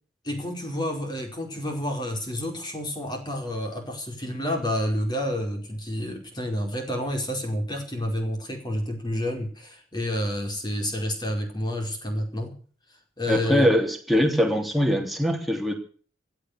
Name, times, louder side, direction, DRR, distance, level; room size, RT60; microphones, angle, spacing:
voice 1, 0.2-12.5 13.2-13.7, left 1 dB, 25° left, 3 dB, 4.8 m, -29 dB
voice 2, 13.3-15.7, equal, ahead, 2 dB, 3.4 m, -22 dB
16.0 x 11.5 x 6.6 m, 0.42 s
head